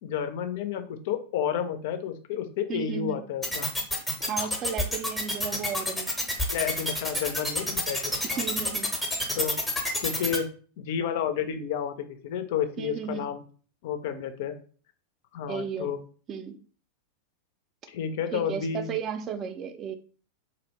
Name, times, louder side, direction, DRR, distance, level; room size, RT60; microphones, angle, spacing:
voice 1, 0.0-3.7 4.4-4.5 6.5-8.4 9.4-9.6 10.0-10.5 10.8-13.4 13.8-14.5 15.3-16.0 17.9-18.9, left 8 dB, 50° left, 9 dB, 0.4 m, -31 dB
voice 2, 2.7-3.2 4.3-6.1 8.2-8.9 12.8-13.3 15.5-15.9 16.3-16.6 18.3-20.0, right 7 dB, 30° right, 9 dB, 0.3 m, -34 dB
sound 1, 3.4-10.4, left 1 dB, 5° left, 0.7 m, -28 dB
2.5 x 2.0 x 2.9 m, 0.41 s
figure-of-eight pair, 90°, 0 cm